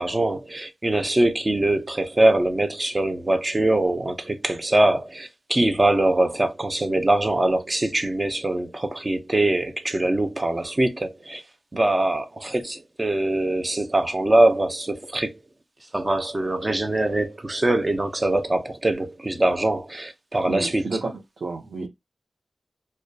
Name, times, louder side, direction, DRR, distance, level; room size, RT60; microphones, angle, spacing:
voice 1, 0.0-11.4 11.7-15.4 15.9-20.9, right 1 dB, 25° right, 0.5 m, -23 dB
voice 2, 20.5-21.9, right 3 dB, 70° right, 0.6 m, -31 dB
2.6 x 2.2 x 2.2 m
wide cardioid pair, 115°, 0 cm